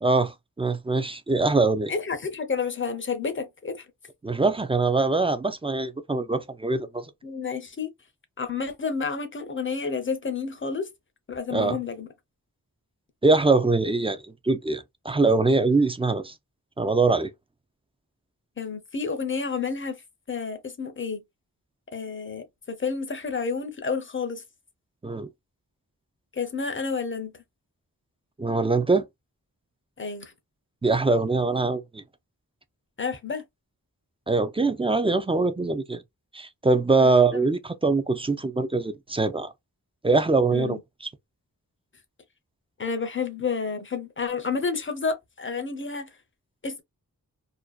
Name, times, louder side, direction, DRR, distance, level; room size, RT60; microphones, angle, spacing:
voice 1, 0.0-1.9 4.2-7.1 11.5-11.8 13.2-14.2 14.4-16.3 16.8-17.3 25.0-25.3 28.4-29.1 30.8-32.0 34.3-36.0 36.3-39.5 40.0-41.1, right 3 dB, 15° right, 0.3 m, -23 dB
voice 2, 1.9-3.8 7.2-7.9 8.4-10.9 11.3-12.1 18.6-20.0 20.3-21.2 21.9-24.4 26.3-27.3 30.0-30.3 33.0-33.4 37.0-37.5 40.5-40.8 42.8-46.1 46.6-46.8, left 5 dB, 35° left, 0.6 m, -30 dB
2.5 x 2.2 x 2.2 m
wide cardioid pair, 85°, 36 cm